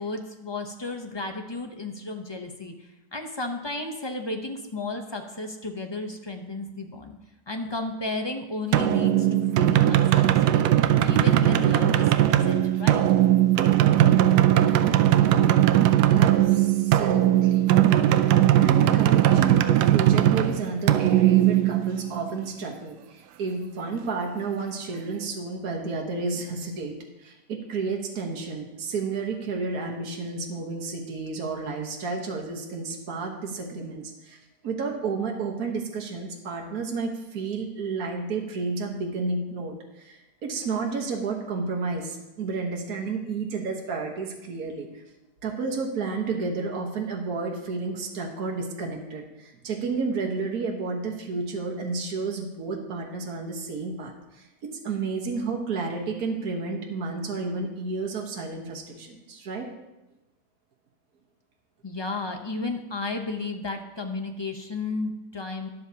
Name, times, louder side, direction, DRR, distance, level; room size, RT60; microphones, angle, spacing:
voice 1, 0.0-7.2 7.5-10.7 11.0-13.0 61.8-65.7, left 2 dB, 30° left, 4 dB, 0.5 m, -33 dB
sound 1, 8.7-22.3, right 12 dB, 85° right, 1.2 m, -19 dB
voice 2, 16.1-17.8 18.3-34.4 34.6-45.0 45.4-59.7, right 4 dB, 65° right, 0 dB, 1.7 m, -31 dB
12.5 x 11.0 x 2.8 m, 0.98 s
omnidirectional pair, 1.7 m